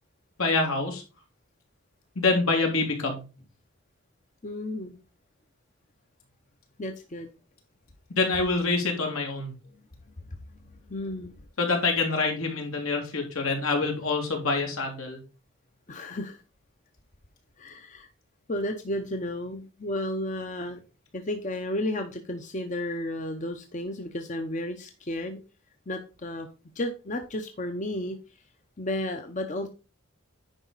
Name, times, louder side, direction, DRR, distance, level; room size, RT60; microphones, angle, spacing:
voice 1, 0.4-1.0 2.2-3.2 8.1-9.5 11.6-15.2, left 3 dB, 80° left, 2 dB, 2.8 m, -26 dB
voice 2, 4.4-5.0 6.8-7.3 9.7-11.5 15.9-16.4 17.6-18.1 18.5-20.8 21.1-25.4 25.9-26.5 26.7-28.2 28.8-29.7, left 1 dB, 35° left, 6 dB, 0.8 m, -33 dB
10.0 x 5.1 x 4.0 m, 0.31 s
head